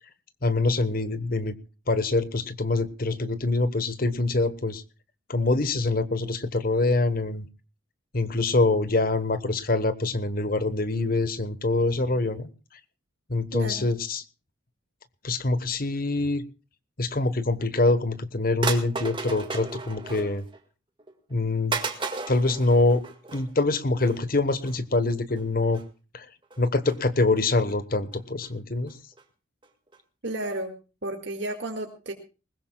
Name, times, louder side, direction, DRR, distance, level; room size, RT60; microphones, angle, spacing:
voice 1, 0.4-1.6 1.9-4.8 5.3-7.5 8.1-12.5 13.3-14.2 15.2-16.4 17.0-20.4 21.3-21.8 22.3-23.0 23.3-25.8 26.1-26.3 26.6-29.0, left 2 dB, 45° left, 14 dB, 1.2 m, -25 dB
voice 2, 13.5-13.9 30.2-30.7 31.0-32.1, right 1 dB, 60° right, 3 dB, 2.0 m, -32 dB
sound 1, 18.6-20.6 21.0-21.1 21.7-23.5 23.9-24.2 24.6-24.8 25.3-25.4 25.7-25.8 26.5-27.0 27.4-27.7 28.1-28.5 28.9-29.0 29.2-29.3 29.6-29.7 29.9-30.0 30.3-30.4 30.6-30.7, right 4 dB, 25° right, 1.9 m, -34 dB
20.5 x 20.0 x 2.3 m, 0.33 s
head